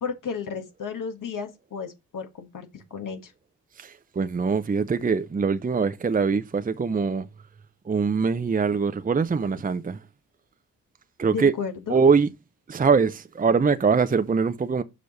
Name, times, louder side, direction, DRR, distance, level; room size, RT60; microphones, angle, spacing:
voice 1, 0.0-3.3 11.3-12.0, left 5 dB, 60° left, 1.6 m, -33 dB
voice 2, 3.8-7.3 7.9-10.0 11.2-11.5 11.9-12.3 12.7-14.8, right 5 dB, 25° right, 0.7 m, -23 dB
6.8 x 5.0 x 4.0 m
supercardioid pair, 50°, 35 cm